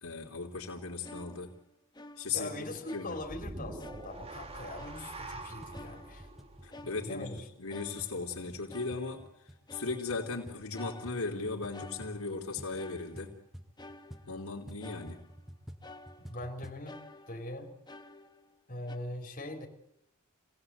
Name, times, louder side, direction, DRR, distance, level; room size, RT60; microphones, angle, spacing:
voice 1, 0.0-1.5 2.2-2.5 2.9-3.2 6.6-9.3 9.7-13.3 14.3-15.2, left 4 dB, 80° left, 0 dB, 3.2 m, -37 dB
sound 1, 1.0-2.5 2.9-3.5 3.8-4.5 4.8-5.4 5.7-7.4 7.7-8.4 8.7-9.4 9.7-10.4 10.7-12.5 12.8-13.5 13.8-14.5 14.8-15.5 15.8-16.5 16.9-18.6 18.9-19.0, left 2 dB, 20° left, 1.3 m, -51 dB
voice 2, 2.3-6.3 7.0-7.4 16.3-17.7 18.7-19.7, left 1 dB, 40° left, 1 dB, 4.2 m, -41 dB
sound 2, 3.2-7.5, right 2 dB, 25° right, 1.6 m, -45 dB
sound 3, 5.2-16.9, equal, ahead, 1.4 m, -51 dB
26.0 x 17.5 x 8.0 m, 0.77 s
head